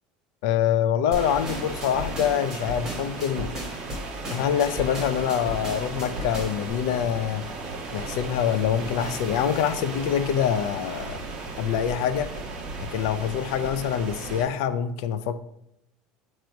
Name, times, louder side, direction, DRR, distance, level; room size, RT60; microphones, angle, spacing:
voice 1, 0.4-3.5 4.3-7.5 7.9-11.2 11.6-12.3 12.9-15.4, left 9 dB, 70° left, 0.5 m, -25 dB
sound 1, 1.1-6.7, equal, 10° right, 2.8 m, -35 dB
sound 2, 1.1-14.5, right 3 dB, 30° right, 1.3 m, -36 dB
9.0 x 3.0 x 5.1 m
cardioid pair, 165°, 3 cm